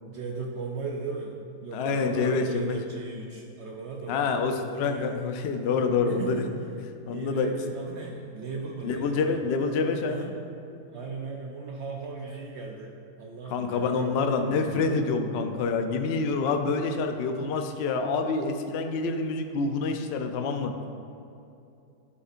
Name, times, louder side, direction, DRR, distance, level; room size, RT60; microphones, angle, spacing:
voice 1, 0.1-1.3 1.6-4.2 4.8-5.2 6.0-6.5 7.1-9.4 10.1-10.3 10.9-15.1, right 4 dB, 75° right, 0 dB, 0.6 m, -37 dB
voice 2, 1.7-2.8 4.1-6.4 7.1-7.5 8.8-10.3 13.5-20.7, left 4 dB, 85° left, 5 dB, 0.5 m, -27 dB
11.0 x 5.3 x 2.5 m, 2.7 s
omnidirectional pair, 1.7 m